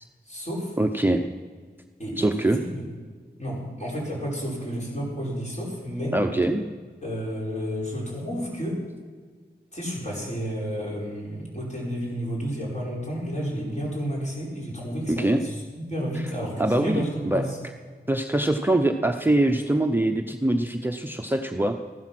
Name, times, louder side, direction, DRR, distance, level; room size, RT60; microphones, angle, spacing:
voice 1, 0.3-0.7 2.0-2.9 3.4-6.1 7.0-8.8 9.7-15.6 15.9-17.6, equal, 40° left, -4 dB, 5.2 m, -31 dB
voice 2, 0.8-1.2 2.2-2.6 6.1-6.7 15.1-15.4 16.6-17.4 18.1-21.8, right 1 dB, 10° right, 4 dB, 0.7 m, -23 dB
14.5 x 12.0 x 6.1 m, 1.5 s
wide cardioid pair, 95°, 18 cm